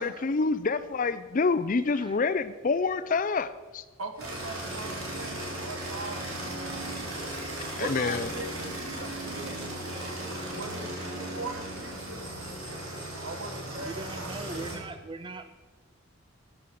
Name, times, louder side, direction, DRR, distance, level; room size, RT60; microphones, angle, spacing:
voice 1, 0.0-3.8 7.8-8.3, left 4 dB, 40° left, 14 dB, 0.4 m, -27 dB
voice 2, 4.0-7.3 7.8-9.6 10.0-12.3 13.2-14.7, right 3 dB, 75° right, 7 dB, 1.5 m, -41 dB
sound 1, 4.2-14.8, right 1 dB, 90° right, 4.4 m, -36 dB
voice 3, 13.7-15.5, right 3 dB, 25° right, 9 dB, 0.5 m, -41 dB
12.5 x 8.6 x 6.4 m, 1.3 s
head